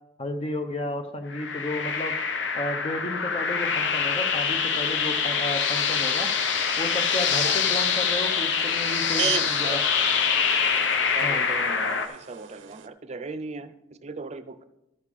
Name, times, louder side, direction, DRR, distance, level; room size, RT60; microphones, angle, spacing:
voice 1, 0.2-2.2 2.5-6.3 6.8-9.8 11.2-11.5, left 1 dB, 30° left, 6 dB, 0.6 m, -32 dB
sound 1, 1.3-12.1, left 6 dB, 70° left, 0.8 m, -25 dB
voice 2, 7.4-7.7 9.1-9.8 11.1-13.7 14.0-14.6, right 3 dB, 35° right, 11 dB, 0.5 m, -37 dB
sound 2, 7.7-12.9, right 12 dB, 80° right, 0.6 m, -37 dB
13.5 x 6.5 x 3.6 m, 0.91 s
head